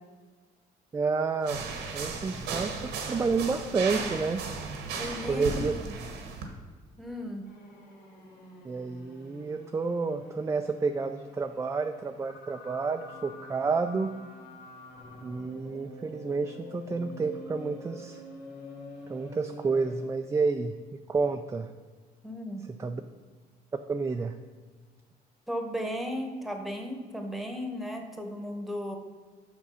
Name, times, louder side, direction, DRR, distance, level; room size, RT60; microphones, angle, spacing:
voice 1, 0.9-1.6 1.9-2.7 3.1-4.4 5.2-5.7 8.6-14.1 15.2-18.2 19.1-21.7 22.7-23.0 23.9-24.3, right 4 dB, 15° right, 6 dB, 0.4 m, -30 dB
sound 1, 1.4-6.5, right 4 dB, 85° right, 1.3 m, -35 dB
voice 2, 4.9-6.0 7.0-7.5 22.2-22.6 25.5-29.0, equal, ahead, 4 dB, 1.2 m, -35 dB
sound 2, 7.5-20.2, left 1 dB, 80° left, 2.6 m, -47 dB
7.1 x 6.1 x 5.6 m, 1.4 s
cardioid pair, 110°, 17 cm